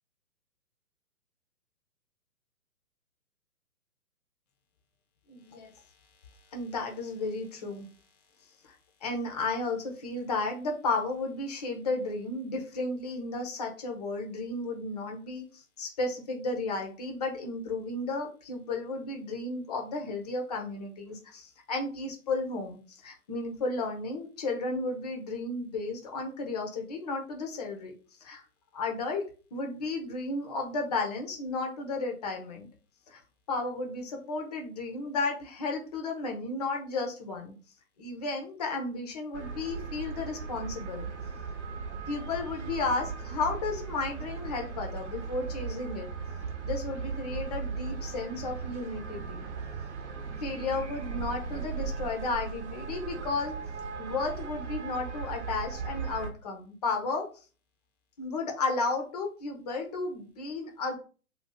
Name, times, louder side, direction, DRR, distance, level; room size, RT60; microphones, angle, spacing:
voice 1, 5.3-5.7 6.5-7.9 8.6-8.8 9.0-27.9 28.2-28.4 28.7-29.2 29.5-32.7 33.1-33.2 33.5-37.5 38.0-41.1 42.1-46.1 46.6-49.4 50.4-53.5 54.0-57.5 58.2-61.0, left 3 dB, 25° left, 3 dB, 0.6 m, -33 dB
sound 1, 39.3-56.3, right 5 dB, 50° right, 0.8 m, -37 dB
2.6 x 2.3 x 3.9 m, 0.37 s
figure-of-eight pair, 135°, 45 cm